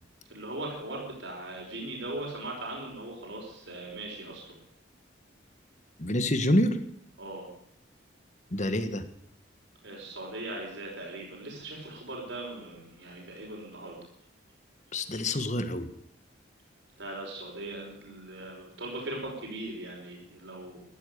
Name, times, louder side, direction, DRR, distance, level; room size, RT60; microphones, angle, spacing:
voice 1, 0.3-4.6 7.2-7.5 9.8-14.0 17.0-20.8, right 2 dB, 70° right, -1 dB, 5.3 m, -39 dB
voice 2, 6.0-6.8 8.5-9.0 14.9-15.9, left 1 dB, 40° left, 10 dB, 1.6 m, -27 dB
14.5 x 13.0 x 6.8 m, 0.69 s
head